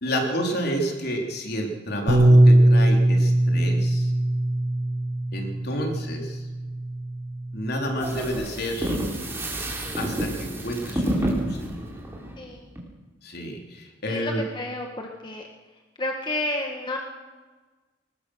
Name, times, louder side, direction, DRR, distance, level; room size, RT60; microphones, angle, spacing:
voice 1, 0.0-4.1 5.3-6.5 7.5-9.0 10.0-11.6 13.2-14.4, equal, 55° left, 1 dB, 3.8 m, -30 dB
Bass guitar, 2.1-8.3, right 1 dB, 85° right, 5.4 m, -21 dB
sound 1, 8.0-12.8, right 1 dB, 15° right, 4.1 m, -29 dB
voice 2, 12.4-12.7 14.1-15.5 16.0-17.0, left 1 dB, 25° left, 1 dB, 1.7 m, -31 dB
21.5 x 20.0 x 6.4 m, 1.3 s
head